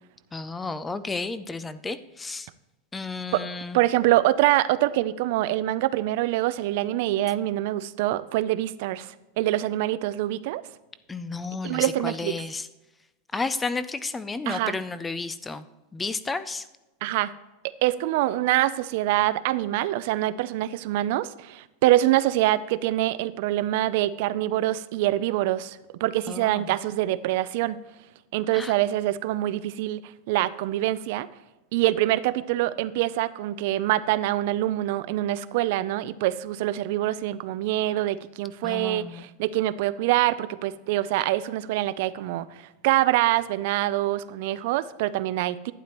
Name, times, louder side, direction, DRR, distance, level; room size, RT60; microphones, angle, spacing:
voice 1, 0.3-2.5 2.9-3.8 11.1-12.7 13.3-15.6 15.9-16.6 26.3-26.7 28.5-28.7 38.6-39.3, left 3 dB, 10° left, 14 dB, 0.4 m, -32 dB
voice 2, 3.7-10.6 11.6-12.4 14.5-14.8 17.0-17.3 17.8-27.8 28.3-31.3 31.7-45.7, right 15 dB, 60° right, 16 dB, 0.4 m, -25 dB
11.5 x 9.2 x 3.0 m, 1.1 s
supercardioid pair, 155°, 0 cm